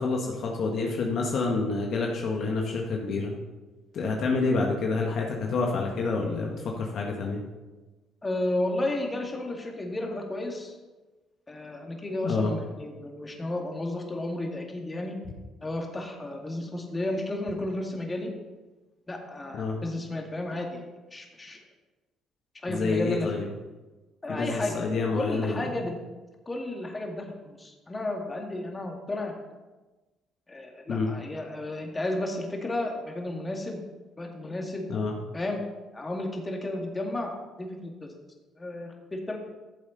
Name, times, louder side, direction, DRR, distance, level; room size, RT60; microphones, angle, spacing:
voice 1, 0.0-3.4 3.9-7.4 12.2-12.5 19.5-19.7 22.7-23.4 24.3-25.7 30.9-31.1 34.9-35.1, left 3 dB, 60° left, 0 dB, 1.6 m, -28 dB
voice 2, 8.2-10.8 11.5-15.2 15.6-18.3 19.1-21.6 22.6-23.3 24.2-24.8 25.1-25.9 26.5-29.3 30.5-33.8 34.2-34.9 35.3-35.6 35.9-37.3 37.6-38.1 38.6-39.4, left 2 dB, 25° left, 1 dB, 2.3 m, -32 dB
13.5 x 7.3 x 4.0 m, 1.2 s
hypercardioid pair, 60°, 0 cm